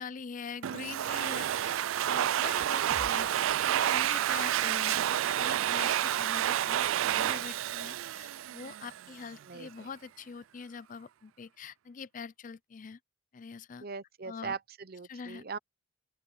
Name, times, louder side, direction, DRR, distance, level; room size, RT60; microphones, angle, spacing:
voice 1, 0.0-13.0 13.3-13.8 14.3-14.6 15.1-15.4, left 5 dB, 40° left, 0.4 m, -44 dB
Domestic sounds home sounds, 0.6-9.1, right 11 dB, 90° right, 0.3 m, -29 dB
sound 1, 2.9-6.8, equal, 75° left, 3.6 m, -53 dB
voice 2, 9.4-9.9 13.8-15.6, right 5 dB, 50° right, 0.8 m, -41 dB
open air
head